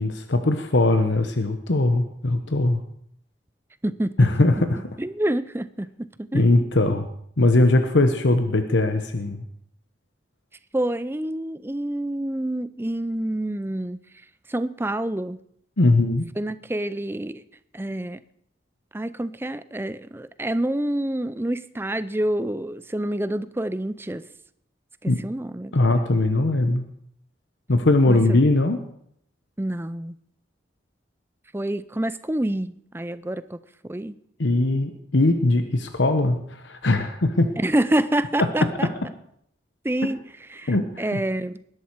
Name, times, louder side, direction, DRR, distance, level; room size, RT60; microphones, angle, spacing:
voice 1, 0.0-2.8 4.2-4.8 6.3-7.1 7.4-9.4 15.8-16.2 25.1-25.2 25.7-26.8 27.7-28.8 34.4-37.5 40.7-41.2, left 2 dB, 80° left, 7 dB, 1.1 m, -20 dB
voice 2, 3.8-4.3 5.0-6.5 10.7-14.0 14.5-15.4 16.4-17.4 17.7-18.2 18.9-24.2 25.0-25.8 28.0-28.4 29.6-30.2 31.5-33.6 33.8-34.2 37.6-38.9 39.8-40.2 40.5-41.6, right 1 dB, 10° right, 14 dB, 0.5 m, -27 dB
20.0 x 11.0 x 4.7 m, 0.71 s
head